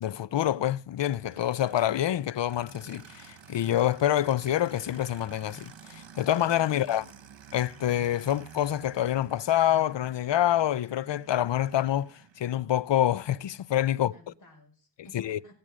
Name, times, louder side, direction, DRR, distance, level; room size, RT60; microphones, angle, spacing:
voice 1, 0.0-7.0 7.5-14.1 15.1-15.5, left 12 dB, 60° left, 0.7 m, -27 dB
Aircraft, 1.3-12.4, right 8 dB, 65° right, 1.6 m, -51 dB
voice 2, 13.9-15.5, left 1 dB, 40° left, 5.4 m, -56 dB
17.0 x 8.8 x 6.3 m
wide cardioid pair, 90°, 48 cm